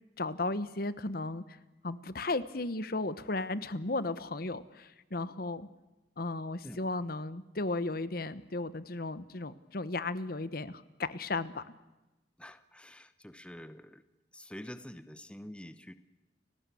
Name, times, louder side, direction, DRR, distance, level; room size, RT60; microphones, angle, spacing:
voice 1, 0.2-1.6 1.8-5.7 6.2-11.6, left 2 dB, 55° left, 14 dB, 1.1 m, -35 dB
voice 2, 12.4-14.0 14.3-15.9, equal, 5° left, 11 dB, 0.9 m, -47 dB
30.0 x 18.5 x 8.5 m, 1.1 s
head